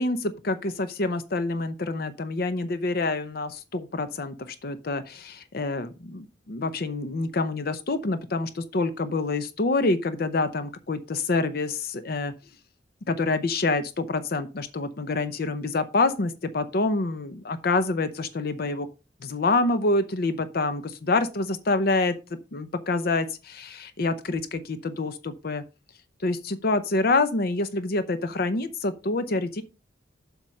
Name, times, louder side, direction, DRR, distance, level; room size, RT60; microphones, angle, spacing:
voice 1, 0.0-12.3 13.1-18.9 19.2-22.2 22.5-25.6 26.2-29.6, left 3 dB, 55° left, 11 dB, 0.6 m, -27 dB
7.5 x 5.1 x 5.3 m, 0.29 s
head